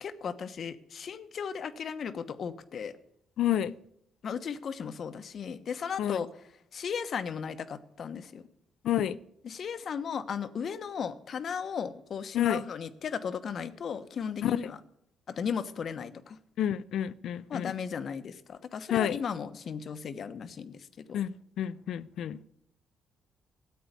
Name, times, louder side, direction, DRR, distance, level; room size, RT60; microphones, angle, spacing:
voice 1, 0.0-2.9 4.2-6.3 6.7-8.4 9.4-14.8 15.3-16.4 17.5-21.2, left 7 dB, 55° left, 1.1 m, -36 dB
voice 2, 3.4-3.7 6.0-6.2 8.8-9.2 12.3-12.6 14.4-14.6 16.6-17.7 18.9-19.2 21.1-22.4, left 11 dB, 75° left, 0.6 m, -29 dB
14.0 x 8.6 x 8.2 m
cardioid pair, 90°, 0 cm